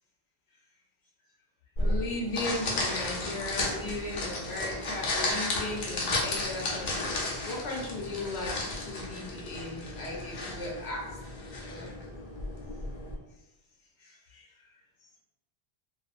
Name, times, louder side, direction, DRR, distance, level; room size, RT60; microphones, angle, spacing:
voice 1, 1.8-7.1 7.5-8.5 8.8-11.2 11.6-11.9 14.0-14.5, left 2 dB, 75° left, -2 dB, 1.0 m, -37 dB
sound 1, 1.8-13.1, left 2 dB, 60° left, 0.7 m, -33 dB
2.5 x 2.3 x 2.4 m, 0.99 s
omnidirectional pair, 1.1 m